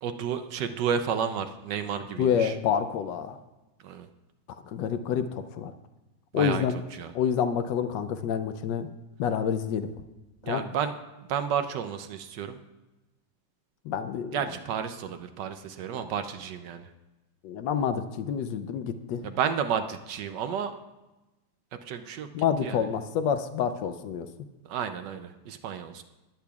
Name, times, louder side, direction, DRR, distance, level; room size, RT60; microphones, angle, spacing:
voice 1, 0.0-2.5 3.8-4.1 6.3-6.7 7.0-7.1 10.4-10.9 11.3-12.6 14.3-16.9 19.2-20.7 21.9-22.3 22.6-22.9 24.7-26.0, right 7 dB, 70° right, 8 dB, 1.2 m, -31 dB
voice 2, 2.2-3.4 4.7-5.7 6.3-6.8 7.1-8.9 9.2-9.9 10.5-10.6 13.9-14.4 15.9-16.0 17.4-19.2 22.3-24.3, left 8 dB, 75° left, 9 dB, 1.2 m, -28 dB
19.5 x 8.5 x 2.4 m, 1.0 s
omnidirectional pair, 2.0 m